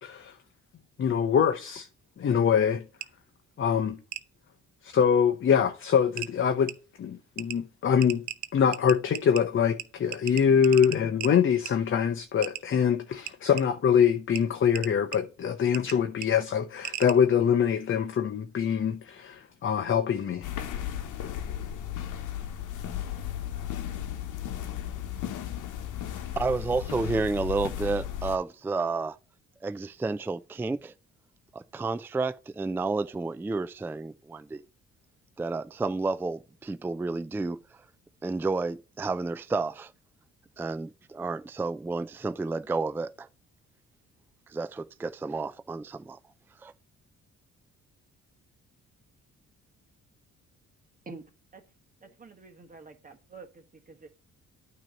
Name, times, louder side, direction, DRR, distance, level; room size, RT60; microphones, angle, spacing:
voice 1, 0.0-0.3 1.0-1.9 2.2-2.8 3.6-4.0 4.8-6.7 7.0-8.2 8.5-20.5, left 7 dB, 40° left, 0.7 m, -24 dB
sound 1, 3.0-3.1 4.1-4.2 5.6-5.7 6.2-6.3 6.7-6.8 7.4-7.6 8.0-9.4 9.8-9.9 10.1-11.3 11.7-11.8 12.4-12.6 13.3-13.6 14.4-14.5 14.7-15.2 15.7-16.0 16.2-16.3 16.8-17.1, right 13 dB, 70° right, 0.6 m, -36 dB
sound 2, 20.4-28.4, left 10 dB, 80° left, 1.0 m, -35 dB
voice 2, 26.4-29.2 29.6-30.9 31.5-34.6 35.4-37.6 38.2-39.9 40.6-43.3 44.5-46.2 46.6-46.7, right 3 dB, 5° right, 0.4 m, -31 dB
voice 3, 52.0-53.5 53.9-54.1, right 4 dB, 25° right, 1.3 m, -46 dB
9.0 x 3.0 x 6.2 m
cardioid pair, 90°, 30 cm